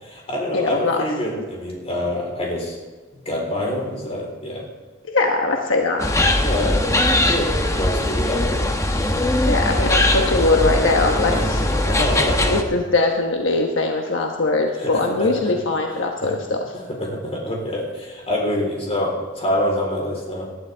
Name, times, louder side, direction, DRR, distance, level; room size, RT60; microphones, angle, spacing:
voice 1, 0.0-2.8 3.3-4.6 6.4-6.9 7.3-9.1 11.3-12.6 14.8-15.5 16.2-20.5, left 1 dB, 35° left, -1 dB, 4.0 m, -26 dB
voice 2, 0.5-1.0 5.1-6.3 9.4-11.6 12.5-16.6, left 3 dB, 75° left, 2 dB, 1.2 m, -21 dB
sound 1, 6.0-12.6, left 1 dB, 15° left, 0.9 m, -20 dB
19.0 x 11.5 x 3.5 m, 1.3 s
head